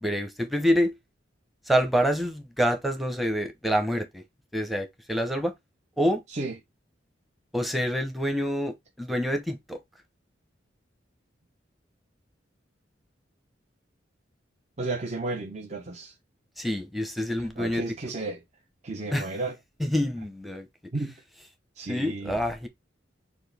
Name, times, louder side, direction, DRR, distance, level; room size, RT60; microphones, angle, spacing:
voice 1, 0.0-1.0 1.7-4.2 4.5-5.5 6.0-6.2 7.5-9.8 16.6-17.8 19.1-19.3 19.8-20.7 21.9-22.7, equal, ahead, 0.8 m, -27 dB
voice 2, 14.8-16.1 17.4-18.4 18.8-19.6 20.9-21.1 21.8-22.4, right 3 dB, 40° right, 0.6 m, -33 dB
6.0 x 2.6 x 3.4 m
head